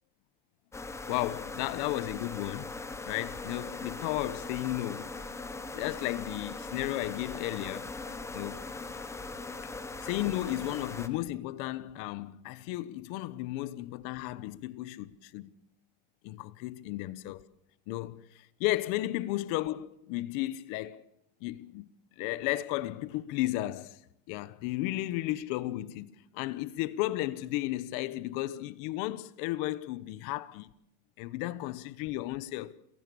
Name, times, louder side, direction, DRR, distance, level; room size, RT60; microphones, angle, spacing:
sound 1, 0.7-11.1, left 3 dB, 5° left, 0.8 m, -40 dB
voice 1, 1.1-2.7 3.0-5.3 5.7-7.9 8.3-8.7 9.6-9.7 10.0-15.5 16.2-17.4 17.9-21.0 21.4-21.9 22.2-24.0 24.3-30.7 31.2-32.8, left 16 dB, 45° left, 1.1 m, -34 dB
28.0 x 17.5 x 6.9 m
supercardioid pair, 165°, 45 cm